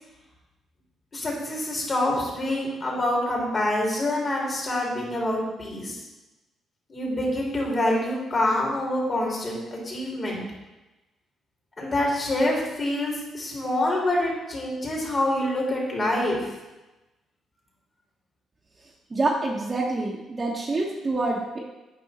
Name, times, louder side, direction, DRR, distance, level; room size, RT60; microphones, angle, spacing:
voice 1, 1.1-6.0 6.9-10.4 11.8-16.5, left 1 dB, 35° left, -3 dB, 3.2 m, -26 dB
voice 2, 19.1-21.6, right 2 dB, 30° right, -4 dB, 1.2 m, -26 dB
8.8 x 5.5 x 4.3 m, 1.0 s
cardioid pair, 90°, 0 cm